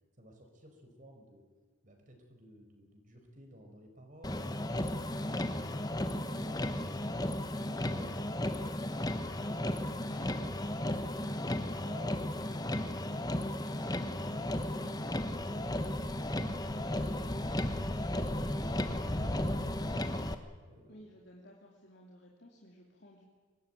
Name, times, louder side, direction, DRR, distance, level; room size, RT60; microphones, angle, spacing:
voice 1, 0.2-1.4 1.8-4.7 5.2-7.2 7.8-10.5 10.9-15.0 15.5-20.2 20.6-21.0, equal, 40° right, 3 dB, 4.7 m, -53 dB
Motor vehicle (road), 4.2-20.3, left 1 dB, 20° left, 1.2 m, -34 dB
voice 2, 20.9-23.2, equal, 55° left, -1 dB, 3.0 m, -56 dB
23.5 x 19.0 x 9.2 m, 1.5 s
head